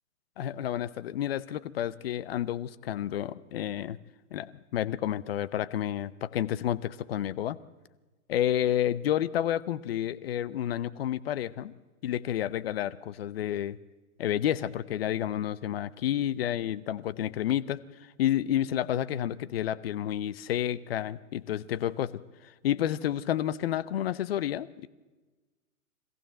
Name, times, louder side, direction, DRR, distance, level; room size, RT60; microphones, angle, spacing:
voice 1, 0.4-4.0 4.3-7.6 8.3-11.7 12.0-13.8 14.2-17.8 18.2-22.2 22.6-24.9, left 11 dB, 40° left, 17 dB, 0.7 m, -30 dB
22.0 x 15.5 x 7.8 m, 1.2 s
hypercardioid pair, 140°, 44 cm